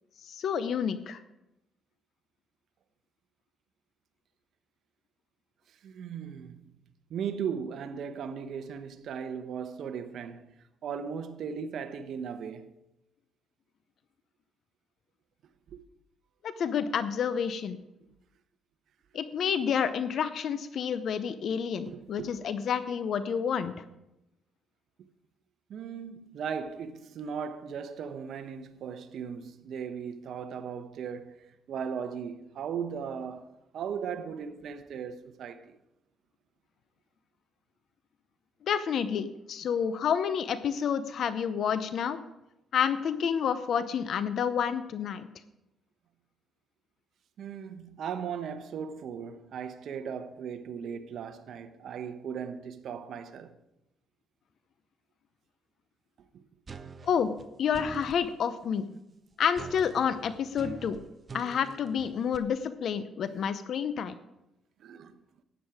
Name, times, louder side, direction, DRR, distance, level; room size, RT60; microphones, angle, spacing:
voice 1, 0.2-1.2 16.4-17.8 19.1-23.7 38.7-42.2 42.7-45.3 57.0-57.3 57.6-58.9 59.4-61.0 61.3-64.2, left 7 dB, 65° left, 0.7 m, -29 dB
voice 2, 5.7-6.7 7.1-10.5 10.8-12.7 15.7-15.8 21.9-22.4 25.7-35.8 47.4-53.6 56.3-56.4 64.8-65.2, right 7 dB, 70° right, 0.9 m, -37 dB
sound 1, 56.7-58.2 59.5-62.4, right 4 dB, 35° right, 0.9 m, -44 dB
12.5 x 9.1 x 4.9 m
cardioid pair, 90°, 0 cm